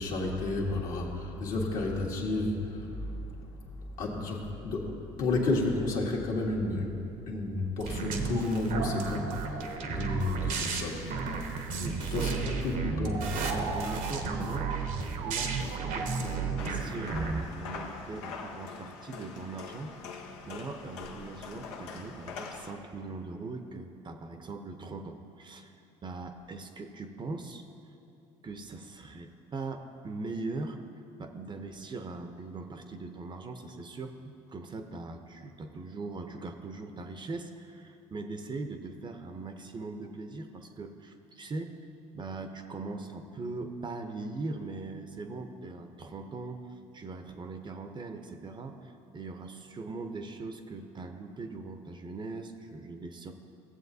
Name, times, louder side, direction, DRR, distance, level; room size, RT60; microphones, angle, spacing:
voice 1, 0.0-3.6 3.9-6.9 7.3-11.1 12.1-13.6, left 2 dB, 65° left, -2 dB, 1.6 m, -32 dB
sound 1, 7.8-17.4, right 4 dB, 65° right, 0.9 m, -33 dB
voice 2, 11.8-12.3 13.5-25.7 26.0-27.7 28.4-30.8 31.2-41.8 42.1-46.6 46.9-53.3, right 3 dB, 30° right, 6 dB, 0.7 m, -40 dB
sound 2, 16.6-22.7, left 5 dB, 85° left, 0.7 m, -43 dB
15.5 x 7.2 x 2.7 m, 2.8 s
hypercardioid pair, 70°, 15 cm